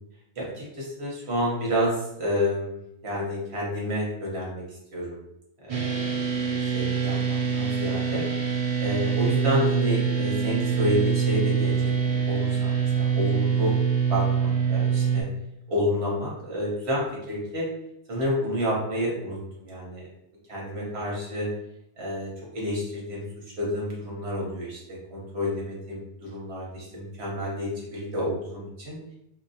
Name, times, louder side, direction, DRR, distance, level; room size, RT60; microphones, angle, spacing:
voice 1, 0.4-2.8 3.0-4.6 4.9-5.2 5.6-8.2 8.8-11.7 12.0-13.8 14.1-15.2 15.7-17.7 18.1-20.1 20.5-21.5 22.0-23.2 23.6-29.0, left 1 dB, 70° right, -3 dB, 1.3 m, -29 dB
sound 1, 5.7-15.2, right 7 dB, 50° right, 0.4 m, -25 dB
2.9 x 2.9 x 2.7 m, 0.81 s
omnidirectional pair, 1.1 m